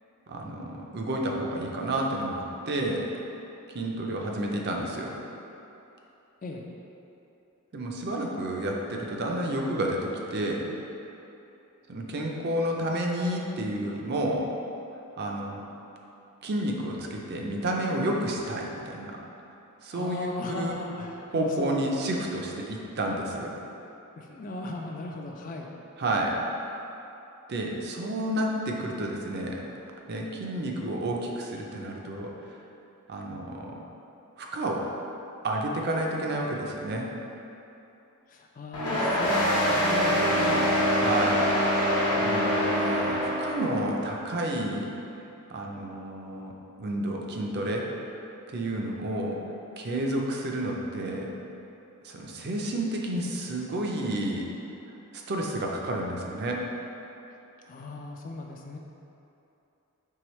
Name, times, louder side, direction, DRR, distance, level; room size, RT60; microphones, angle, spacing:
voice 1, 0.3-3.1 3.7-5.2 7.7-10.7 11.9-14.4 15.2-15.6 16.4-19.2 19.8-20.3 20.6-20.8 21.3-23.5 26.0-26.4 27.5-29.6 30.1-32.3 33.1-33.8 34.4-34.8 35.4-37.1 41.0-41.4 42.2-44.9 45.5-46.5 46.8-47.9 48.5-49.4 49.8-51.3 52.0-54.5 55.1-56.6, right 1 dB, 45° right, 0 dB, 0.4 m, -30 dB
voice 2, 19.9-21.8 24.2-25.7 38.3-40.7 57.6-58.8, left 2 dB, 35° left, 1 dB, 0.3 m, -37 dB
sound 1, 38.7-43.8, equal, 85° left, 1.0 m, -24 dB
4.6 x 3.4 x 3.0 m, 2.9 s
head